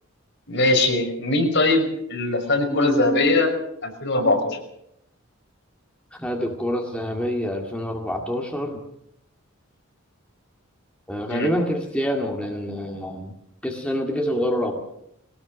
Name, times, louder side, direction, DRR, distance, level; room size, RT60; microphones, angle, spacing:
voice 1, 0.5-3.5 3.8-4.6 11.3-11.5, left 2 dB, 60° left, 2 dB, 5.8 m, -21 dB
voice 2, 2.7-3.4 4.2-4.4 6.2-8.8 11.1-13.3 13.6-14.8, equal, 5° left, 1 dB, 2.1 m, -26 dB
21.5 x 18.5 x 6.4 m, 0.76 s
head